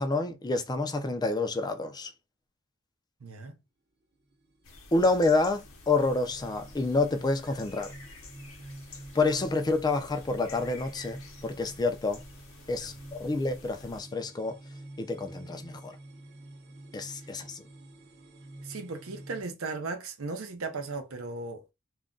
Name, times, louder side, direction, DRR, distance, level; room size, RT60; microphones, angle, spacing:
voice 1, 0.0-2.1 4.9-7.9 9.1-12.2 12.7-14.6 15.0-16.0 16.9-17.6, left 3 dB, 20° left, 0.4 m, -28 dB
voice 2, 3.2-3.6 18.6-21.6, right 3 dB, 75° right, 0.7 m, -36 dB
sound 1, 4.2-19.4, right 1 dB, 50° right, 1.0 m, -49 dB
sound 2, 4.6-14.0, left 3 dB, 70° left, 0.7 m, -50 dB
2.4 x 2.1 x 3.7 m
head